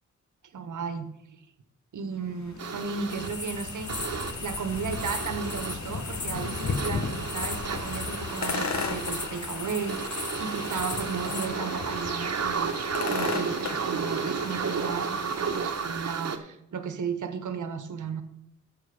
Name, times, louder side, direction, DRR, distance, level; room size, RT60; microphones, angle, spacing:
voice 1, 0.5-1.1 1.9-12.7 13.0-18.2, right 5 dB, 85° right, 10 dB, 1.3 m, -35 dB
sound 1, 2.3-16.3, left 4 dB, 65° left, 1.5 m, -36 dB
sound 2, 2.6-16.4, right 6 dB, 60° right, 1.2 m, -33 dB
sound 3, 3.1-11.5, left 3 dB, 35° left, 1.6 m, -38 dB
14.0 x 4.6 x 6.9 m, 0.80 s
cardioid pair, 80°, 29 cm